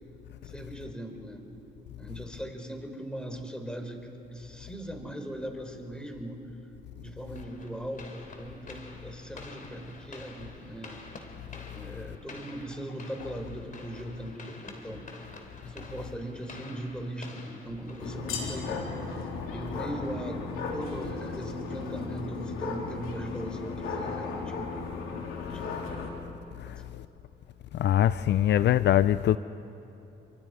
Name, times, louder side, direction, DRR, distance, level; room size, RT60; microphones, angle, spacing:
voice 1, 0.4-1.5 2.0-6.4 7.0-11.0 11.7-15.2 15.6-18.8 19.5-20.4 20.7-24.9 25.4-25.8 26.6-26.8, right 1 dB, 5° left, 3.9 m, -39 dB
sound 1, 7.4-18.6, left 3 dB, 40° left, 3.4 m, -48 dB
sound 2, 18.0-26.1, left 4 dB, 90° left, 3.3 m, -35 dB
voice 2, 27.8-29.4, left 11 dB, 60° left, 0.5 m, -22 dB
28.5 x 24.5 x 4.9 m
cardioid pair, 90°, 20 cm